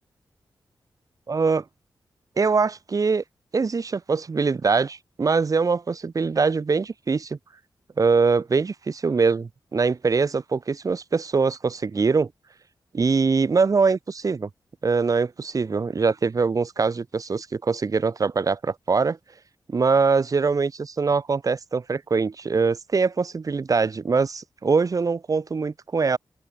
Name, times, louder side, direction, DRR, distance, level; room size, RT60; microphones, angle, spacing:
voice 1, 1.3-1.6 2.4-3.2 3.5-7.4 8.0-12.3 12.9-14.5 14.8-19.2 19.7-20.7 21.0-26.2, right 4 dB, 45° right, 0.7 m, -23 dB
open air
cardioid pair, 50°, 8 cm